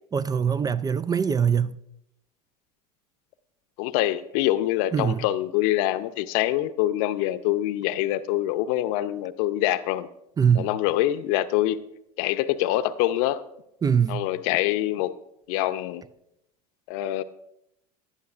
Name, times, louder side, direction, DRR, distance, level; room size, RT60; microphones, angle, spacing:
voice 1, 0.1-1.8 4.9-5.3 10.4-10.7 13.8-14.3, right 7 dB, 20° right, 0.4 m, -23 dB
voice 2, 3.8-10.1 10.5-11.8 12.2-13.4 14.1-15.1 15.5-16.0 16.9-17.2, left 14 dB, 60° left, 0.7 m, -25 dB
17.0 x 11.5 x 2.5 m
hypercardioid pair, 80°, 20 cm